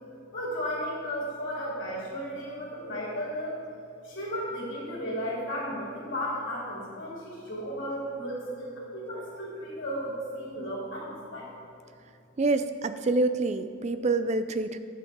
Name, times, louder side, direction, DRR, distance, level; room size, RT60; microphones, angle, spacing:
voice 1, 0.3-3.6 4.0-11.5, equal, 60° left, -5 dB, 2.4 m, -34 dB
voice 2, 12.4-14.8, right 3 dB, 35° right, 11 dB, 0.3 m, -26 dB
11.5 x 7.7 x 3.7 m, 2.6 s
head